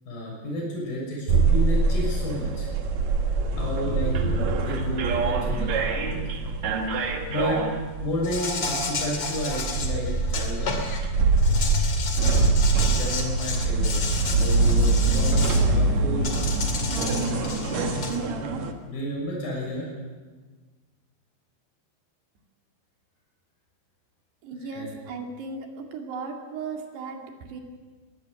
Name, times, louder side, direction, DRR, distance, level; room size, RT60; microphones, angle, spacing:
voice 1, 0.0-2.7 3.5-6.5 6.9-7.6 8.0-10.9 12.9-14.0 14.2-16.4 17.1-17.4 18.8-19.9 24.7-24.9, left 1 dB, 60° left, -2 dB, 8.6 m, -31 dB
sound 1, 1.3-18.7, right 3 dB, 55° right, 2.1 m, -24 dB
Insect, 8.2-11.0 11.4-15.6 16.2-18.2, left 4 dB, 40° left, 2.8 m, -32 dB
voice 2, 24.4-27.6, right 4 dB, 75° right, 3 dB, 4.5 m, -36 dB
21.0 x 17.5 x 8.2 m, 1.4 s
omnidirectional pair, 4.8 m